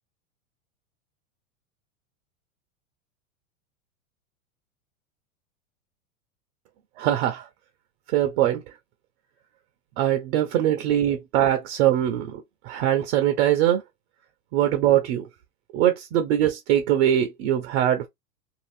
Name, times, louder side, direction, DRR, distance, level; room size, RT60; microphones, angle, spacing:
voice 1, 7.0-7.5 8.1-8.6 10.0-13.8 14.5-15.3 15.7-18.1, right 11 dB, 55° right, 0.7 m, -22 dB
2.7 x 2.4 x 3.2 m
hypercardioid pair, 100°, 41 cm